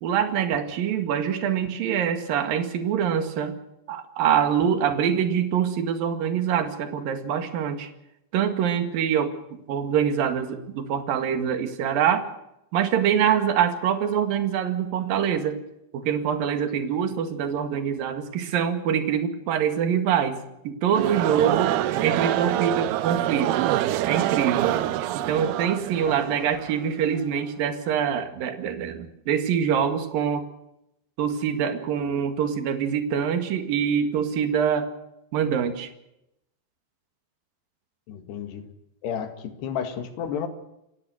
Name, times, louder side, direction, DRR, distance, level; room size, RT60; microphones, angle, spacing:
voice 1, 0.0-3.6 3.9-7.9 8.3-9.3 9.7-12.2 12.7-15.6 15.9-23.7 24.1-24.8 25.1-30.5 31.2-34.9 35.3-35.9, right 8 dB, 55° right, 8 dB, 3.3 m, -25 dB
sound 1, 20.9-27.4, right 13 dB, 85° right, 2.2 m, -26 dB
voice 2, 38.1-38.7 39.0-40.5, left 8 dB, 60° left, 8 dB, 3.8 m, -31 dB
29.5 x 16.5 x 6.5 m, 0.84 s
omnidirectional pair, 5.8 m